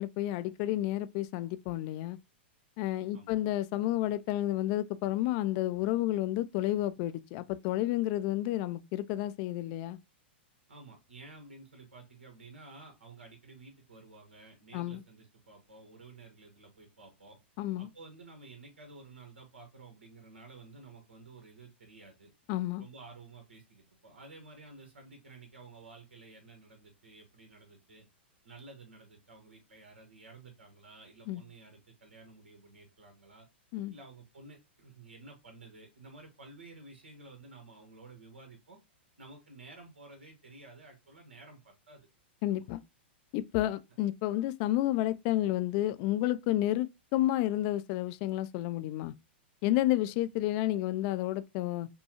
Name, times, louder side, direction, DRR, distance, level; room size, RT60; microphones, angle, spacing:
voice 1, 0.0-2.2 2.8-10.0 14.7-15.0 17.6-17.9 22.5-22.8 31.3-31.4 33.7-33.9 42.4-42.8 43.3-49.1 49.6-51.9, left 14 dB, 45° left, 0.4 m, -31 dB
voice 2, 10.7-17.4 17.8-22.3 22.8-28.1 28.4-33.5 33.9-38.8 39.2-42.1 42.5-42.6, right 3 dB, 85° right, 1.3 m, -52 dB
5.4 x 2.3 x 2.9 m
hypercardioid pair, 115°, 6 cm